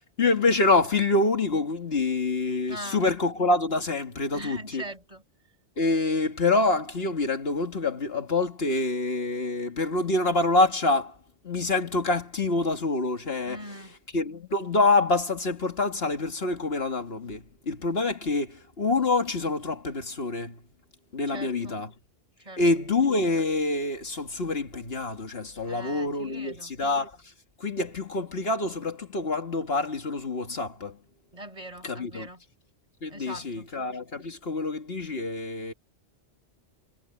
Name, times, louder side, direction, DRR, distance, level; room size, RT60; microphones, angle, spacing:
voice 1, 0.2-4.8 5.8-11.1 11.4-13.6 14.1-20.6 21.1-21.9 22.6-27.1 27.6-31.0 31.8-32.3 33.0-35.7, left 3 dB, 65° left, 2.1 m, -26 dB
voice 2, 2.7-3.1 4.3-5.2 13.4-13.9 21.3-21.8 22.4-22.6 25.6-26.7 31.3-32.4 33.1-33.7, right 1 dB, 35° right, 4.9 m, -41 dB
omnidirectional pair, 1.1 m